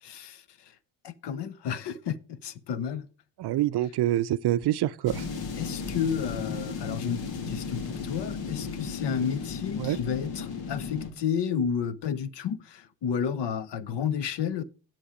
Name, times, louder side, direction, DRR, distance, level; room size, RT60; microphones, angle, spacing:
voice 1, 0.0-0.4 1.0-3.1 5.6-14.6, left 7 dB, 65° left, 0.9 m, -31 dB
voice 2, 3.4-5.2 9.8-10.0, right 13 dB, 60° right, 0.5 m, -26 dB
sound 1, 5.1-11.1, left 5 dB, 80° left, 2.9 m, -35 dB
10.0 x 7.5 x 5.0 m
cardioid pair, 155°, 45 cm